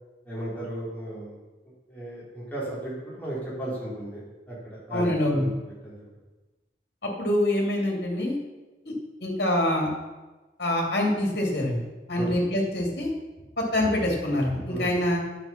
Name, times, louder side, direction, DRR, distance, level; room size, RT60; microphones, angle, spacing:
voice 1, 0.3-1.4 1.9-5.5 5.8-5.9 12.2-12.3 14.7-14.9, right 1 dB, 10° left, -8 dB, 4.1 m, -35 dB
voice 2, 4.9-5.4 7.0-8.4 8.8-8.9 9.2-9.9 10.6-11.8 12.1-13.1 13.6-15.2, left 1 dB, 65° left, -1 dB, 2.9 m, -25 dB
10.0 x 7.3 x 6.0 m, 1.2 s
head